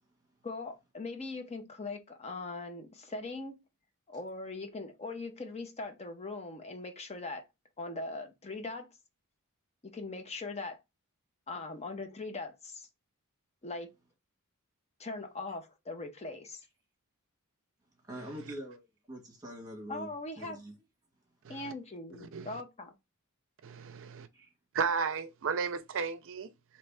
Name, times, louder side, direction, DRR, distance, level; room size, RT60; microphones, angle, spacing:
voice 1, 0.4-3.6 4.1-7.4 7.8-8.9 9.8-10.8 11.5-12.9 13.6-13.9 15.0-16.6 19.9-20.6 21.5-22.9, left 3 dB, 30° left, 0.7 m, -40 dB
voice 2, 18.1-18.8 19.1-20.1 20.4-20.7 24.3-24.5, equal, 15° right, 1.7 m, -44 dB
voice 3, 22.2-22.6 23.6-24.3 24.7-26.5, right 5 dB, 60° right, 0.5 m, -34 dB
3.2 x 3.0 x 4.6 m
head